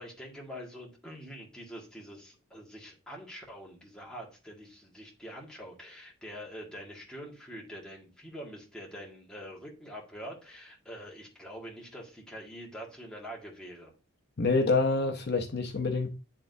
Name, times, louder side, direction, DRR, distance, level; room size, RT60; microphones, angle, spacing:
voice 1, 0.0-13.9, equal, 5° left, 1.6 m, -45 dB
voice 2, 14.4-16.1, left 3 dB, 55° left, 0.7 m, -27 dB
9.9 x 3.6 x 2.6 m
head